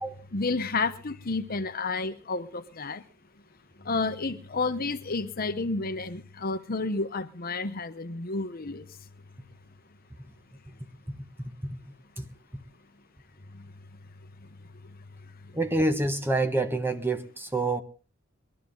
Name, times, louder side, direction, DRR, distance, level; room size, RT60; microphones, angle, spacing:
voice 1, 0.3-3.0 3.9-8.8, left 3 dB, 50° left, 1.0 m, -30 dB
voice 2, 11.2-11.8 12.2-12.3 15.5-17.8, right 2 dB, 10° right, 1.2 m, -28 dB
22.0 x 13.0 x 3.9 m
head